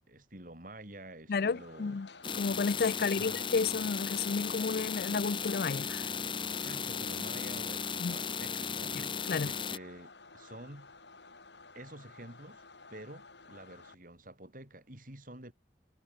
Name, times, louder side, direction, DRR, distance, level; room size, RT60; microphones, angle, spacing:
voice 1, 0.1-2.0 3.0-3.5 6.5-10.9 11.7-12.6 12.9-15.5, right 1 dB, 50° right, 6.3 m, -49 dB
voice 2, 1.3-2.1 2.3-6.1 8.0-8.2 9.3-9.5, left 4 dB, 60° left, 0.5 m, -31 dB
sound 1, 1.4-13.9, left 3 dB, 80° left, 4.9 m, -54 dB
sound 2, 2.2-9.8, left 6 dB, 30° left, 1.1 m, -36 dB
head